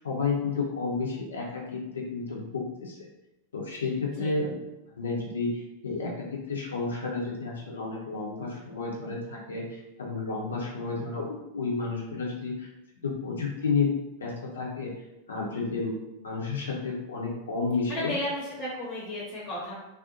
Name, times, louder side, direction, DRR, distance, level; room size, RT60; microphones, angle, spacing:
voice 1, 0.0-3.1 3.5-4.6 4.9-12.7 13.0-13.9 14.2-14.9 15.3-18.1, left 4 dB, 70° left, -2 dB, 0.6 m, -31 dB
voice 2, 17.9-19.7, left 1 dB, 25° left, -6 dB, 0.8 m, -33 dB
2.5 x 2.0 x 2.8 m, 0.94 s
figure-of-eight pair, 90°, 0 cm